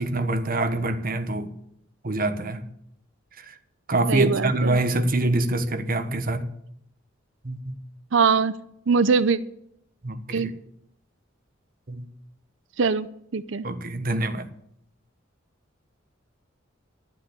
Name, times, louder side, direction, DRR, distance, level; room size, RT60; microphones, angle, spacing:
voice 1, 0.0-1.5 2.0-2.7 3.4-3.6 3.9-6.5 7.4-7.7 10.0-10.5 11.9-12.0 13.6-14.5, right 2 dB, 45° right, 1.3 m, -25 dB
voice 2, 4.1-4.8 8.1-8.5 8.9-9.4 10.3-10.5 12.8-13.1 13.3-13.7, right 5 dB, 65° right, 0.6 m, -22 dB
12.0 x 7.7 x 10.0 m
head